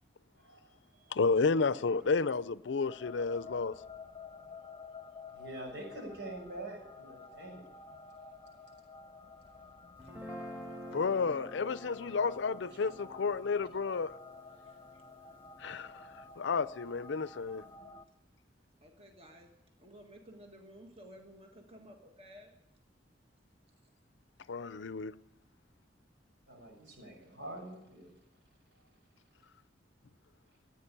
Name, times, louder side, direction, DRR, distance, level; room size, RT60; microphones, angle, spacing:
voice 1, 0.4-1.2 2.0-2.1 5.3-7.7 26.5-28.1, right 2 dB, 80° right, 6.4 m, -46 dB
voice 2, 1.1-3.7 10.9-14.1 15.6-15.9 16.4-17.6 24.5-25.1, left 4 dB, 85° left, 0.5 m, -31 dB
sound 1, 2.8-18.0, left 4 dB, 30° left, 0.7 m, -51 dB
Guitar, 10.0-16.3, equal, 10° right, 2.5 m, -49 dB
voice 3, 18.8-19.5 19.8-22.5, equal, 35° right, 1.7 m, -54 dB
14.5 x 9.5 x 9.8 m
head